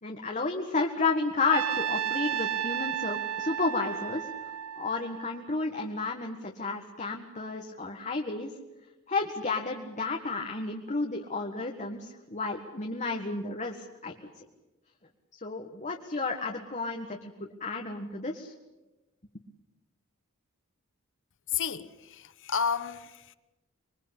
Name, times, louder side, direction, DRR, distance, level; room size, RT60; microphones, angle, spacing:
voice 1, 0.0-4.3 4.8-8.5 9.1-14.4 15.4-18.5, left 3 dB, 35° left, 1.7 m, -32 dB
Trumpet, 1.5-5.7, right 10 dB, 80° right, 0.8 m, -33 dB
voice 2, 21.5-23.3, left 7 dB, 60° left, 1.3 m, -32 dB
26.0 x 22.0 x 8.3 m
head